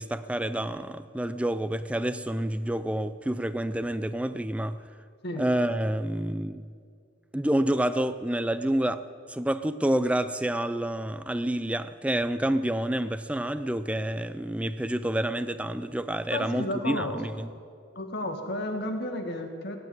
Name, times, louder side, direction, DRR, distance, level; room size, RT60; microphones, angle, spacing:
voice 1, 0.0-4.8 5.4-6.6 7.3-9.0 9.3-17.5, right 1 dB, 5° right, 12 dB, 0.4 m, -28 dB
voice 2, 16.3-17.2 18.0-19.8, left 1 dB, 55° left, 4 dB, 1.8 m, -32 dB
19.0 x 8.3 x 9.1 m, 2.2 s
head